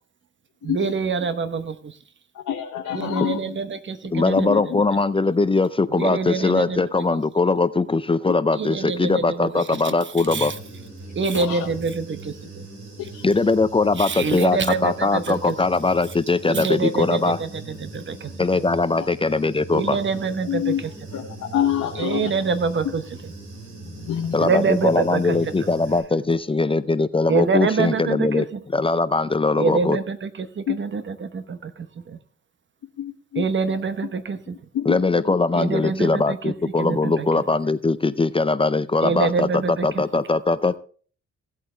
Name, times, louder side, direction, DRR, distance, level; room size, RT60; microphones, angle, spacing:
voice 1, 0.6-2.0 2.9-4.7 5.9-6.9 8.5-10.6 11.1-12.7 14.0-15.6 16.5-18.6 19.7-21.2 21.9-23.3 24.4-25.7 27.3-28.6 29.6-32.2 33.3-34.6 35.5-37.4 39.0-40.2, right 4 dB, 40° right, 11 dB, 1.0 m, -26 dB
voice 2, 2.3-3.6 4.5-4.8 11.3-11.7 13.0-13.2 20.5-20.8 21.1-22.3 24.0-24.4 30.7-30.8 33.0-33.4 34.7-35.0, left 10 dB, 80° left, 2 dB, 1.2 m, -26 dB
voice 3, 4.1-10.5 13.2-17.4 18.4-20.0 24.3-28.5 28.7-30.0 34.8-40.8, left 3 dB, 20° left, 14 dB, 0.5 m, -21 dB
Human voice / Buzz, 10.3-26.0, right 2 dB, 85° right, 5.2 m, -40 dB
16.0 x 8.3 x 3.3 m, 0.43 s
cardioid pair, 95°, 29 cm